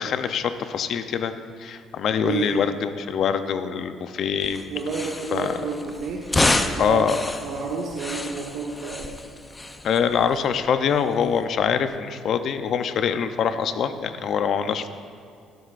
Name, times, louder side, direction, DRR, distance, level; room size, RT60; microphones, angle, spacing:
voice 1, 0.0-1.3 1.6-4.6 5.3-5.6 6.8-7.2 9.8-14.9, left 7 dB, 55° left, 9 dB, 0.7 m, -24 dB
voice 2, 2.1-2.7 4.7-9.1, right 4 dB, 70° right, -3 dB, 1.3 m, -30 dB
sound 1, 4.4-12.0, left 2 dB, 15° left, 0.6 m, -30 dB
17.5 x 12.5 x 2.6 m, 2.4 s
cardioid pair, 120°, 0 cm